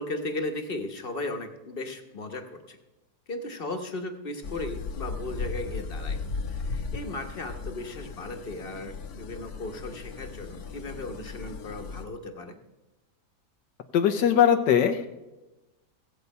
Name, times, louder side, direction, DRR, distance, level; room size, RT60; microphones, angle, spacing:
voice 1, 0.0-2.8 3.3-6.2 6.5-12.6, left 2 dB, 35° left, 6 dB, 1.2 m, -36 dB
sound 1, 4.4-12.1, left 4 dB, 65° left, 1.5 m, -36 dB
voice 2, 13.9-15.1, left 8 dB, 80° left, 5 dB, 1.4 m, -21 dB
16.0 x 8.1 x 5.5 m, 1.1 s
omnidirectional pair, 1.8 m